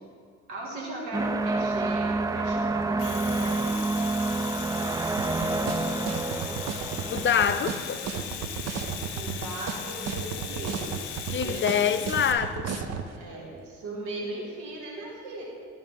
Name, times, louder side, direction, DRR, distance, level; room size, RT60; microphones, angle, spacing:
voice 1, 0.5-4.0 9.1-10.9 11.4-11.7 13.2-15.4, right 2 dB, 70° right, -2 dB, 2.0 m, -37 dB
sound 1, 1.1-7.6, right 3 dB, 10° right, 0.3 m, -28 dB
Domestic sounds home sounds, 2.8-12.3, left 8 dB, 80° left, 0.7 m, -38 dB
sound 2, 5.2-13.1, right 7 dB, 55° right, 0.7 m, -33 dB
voice 2, 7.1-8.0 11.3-12.7, left 8 dB, 40° left, 10 dB, 0.6 m, -25 dB
12.0 x 4.6 x 3.6 m, 2.2 s
hypercardioid pair, 50°, 31 cm